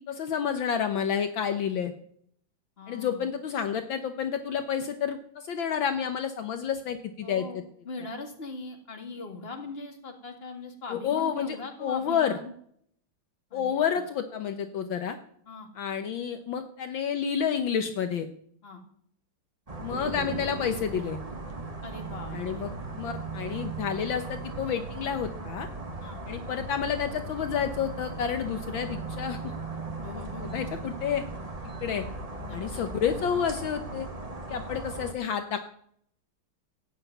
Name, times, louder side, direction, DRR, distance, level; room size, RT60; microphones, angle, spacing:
voice 1, 0.1-1.9 2.9-7.4 10.9-12.4 13.5-15.2 15.8-18.3 19.8-21.2 22.3-22.7 23.0-25.7 26.3-29.4 30.4-31.2 31.8-32.0 32.5-34.1 34.5-35.7, left 7 dB, 70° left, 8 dB, 1.7 m, -30 dB
voice 2, 2.8-3.3 7.2-12.5 13.5-14.0 15.5-15.7 18.6-18.8 21.8-22.7 26.0-26.2 30.0-30.7 32.4-32.9, left 3 dB, 30° left, 4 dB, 2.2 m, -41 dB
sound 1, 19.7-35.1, right 2 dB, 20° right, 1.2 m, -37 dB
16.0 x 6.4 x 9.2 m, 0.65 s
omnidirectional pair, 2.3 m